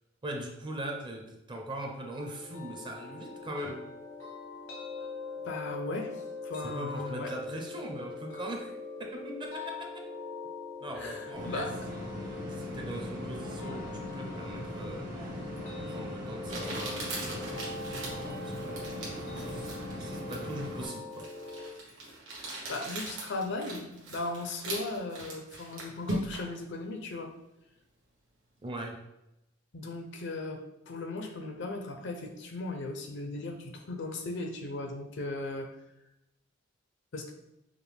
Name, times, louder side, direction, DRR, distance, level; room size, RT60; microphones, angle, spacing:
voice 1, 0.2-3.9 6.6-8.7 9.0-10.1 10.8-15.1 15.7-21.3 28.6-29.0, right 1 dB, 25° right, 1 dB, 0.6 m, -41 dB
sound 1, 2.2-21.7, left 3 dB, 85° left, 1.1 m, -42 dB
voice 2, 5.4-6.1 6.4-7.3 11.0-11.7 22.7-27.3 29.7-30.6 30.9-35.7 37.1-37.3, left 2 dB, 60° left, 4 dB, 0.5 m, -37 dB
sound 2, 11.3-20.9, equal, 45° right, 1.0 m, -40 dB
Crumpling crinkling, 15.6-15.7 16.5-26.6, right 1 dB, 70° right, 1.2 m, -40 dB
4.8 x 2.1 x 3.4 m, 0.88 s
head